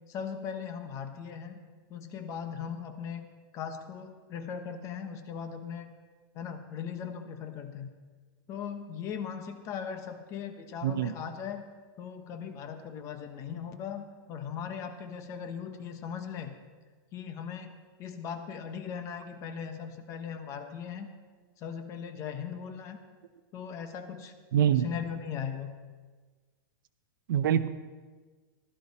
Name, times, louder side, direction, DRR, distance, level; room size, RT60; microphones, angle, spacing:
voice 1, 0.1-1.6 1.9-3.3 3.5-5.9 6.3-7.9 8.5-11.6 12.0-16.5 17.1-21.1 21.6-23.0 23.5-24.3 24.7-25.7, left 7 dB, 25° left, 7 dB, 1.1 m, -39 dB
voice 2, 10.8-11.1 24.5-24.9 27.3-27.7, right 9 dB, 65° right, 12 dB, 0.8 m, -25 dB
16.0 x 13.0 x 4.2 m, 1.4 s
supercardioid pair, 165°, 12 cm